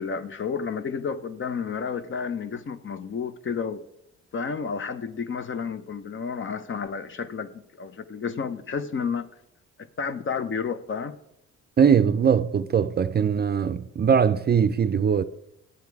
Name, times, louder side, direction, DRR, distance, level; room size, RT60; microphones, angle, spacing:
voice 1, 0.0-3.8 4.3-9.3 9.8-11.1, left 6 dB, 40° left, 0.8 m, -31 dB
voice 2, 11.8-15.2, right 7 dB, 35° right, 0.5 m, -21 dB
10.5 x 9.4 x 4.7 m
cardioid pair, 90°, 30 cm